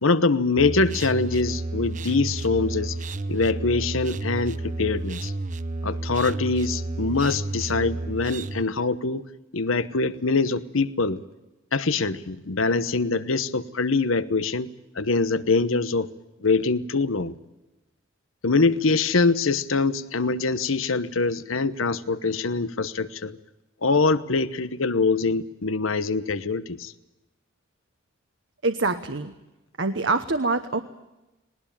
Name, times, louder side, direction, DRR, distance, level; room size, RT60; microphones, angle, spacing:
voice 1, 0.0-3.0 3.3-5.3 5.8-9.2 9.5-11.2 11.7-14.7 15.0-16.1 16.4-17.3 18.4-23.4 23.8-26.9, left 3 dB, 75° left, 15 dB, 1.0 m, -24 dB
sound 1, 0.6-8.6, right 2 dB, 35° right, 0.7 m, -31 dB
voice 2, 28.6-29.3 29.8-30.8, right 3 dB, 60° right, 7 dB, 1.0 m, -25 dB
20.0 x 19.5 x 8.7 m, 1.0 s
head